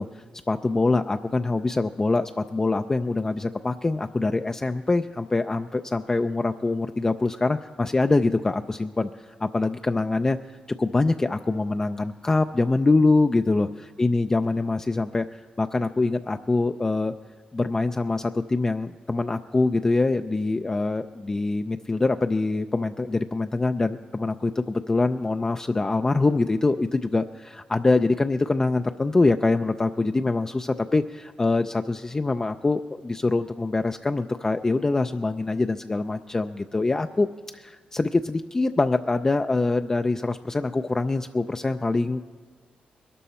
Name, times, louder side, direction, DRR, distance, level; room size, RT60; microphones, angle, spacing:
voice 1, 0.0-9.1 9.4-13.7 14.0-17.1 17.5-37.3 37.5-42.2, left 3 dB, 20° left, 7 dB, 0.3 m, -24 dB
21.5 x 12.5 x 4.2 m, 1.5 s
wide cardioid pair, 125°, 3 cm